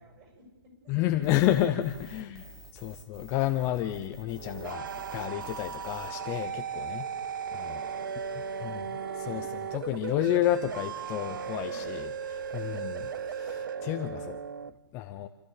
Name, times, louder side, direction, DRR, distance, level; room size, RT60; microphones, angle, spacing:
voice 1, 0.0-1.4 1.9-2.1 2.4-2.5 7.5-9.4 11.6-11.9 12.5-12.9, right 2 dB, 20° right, 1 dB, 7.5 m, -55 dB
voice 2, 0.9-2.4 2.7-7.1 7.7-7.8 8.6-8.8 9.3-9.5 9.7-13.0 13.3-14.4 14.9-15.3, left 13 dB, 20° left, 8 dB, 0.7 m, -30 dB
sound 1, 1.2-6.1, right 2 dB, 5° left, 3.1 m, -50 dB
sound 2, 4.3-14.7, right 7 dB, 50° right, 1.0 m, -36 dB
sound 3, 4.7-13.7, left 6 dB, 65° left, 2.2 m, -50 dB
28.0 x 14.0 x 8.5 m, 1.2 s
hypercardioid pair, 150°, 13 cm